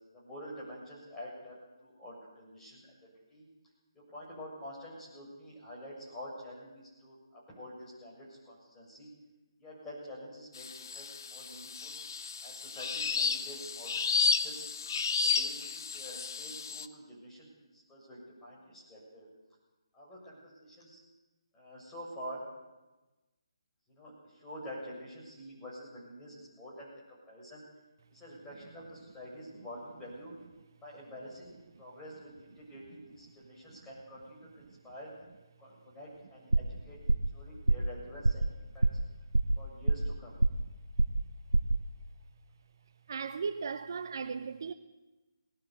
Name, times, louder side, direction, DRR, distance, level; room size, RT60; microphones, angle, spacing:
voice 1, 0.1-3.4 4.1-9.1 9.6-11.9 12.4-14.7 15.1-19.3 19.9-21.0 21.5-22.5 23.9-27.6 28.1-30.3 30.8-35.1 35.6-37.0 37.3-38.9 39.6-40.4, equal, 10° left, 7.5 m, -47 dB
sound 1, 10.5-16.8, left 5 dB, 45° left, 1.0 m, -32 dB
sound 2, 36.5-36.8 37.1-37.4 37.7-37.9 38.2-38.5 38.8-39.1 39.3-40.1 40.4-40.7 41.0-41.3 41.5-41.8, right 2 dB, 80° right, 0.8 m, -26 dB
voice 2, 43.1-44.7, right 5 dB, 45° right, 0.8 m, -36 dB
19.5 x 17.5 x 8.3 m
figure-of-eight pair, 145°, 3 cm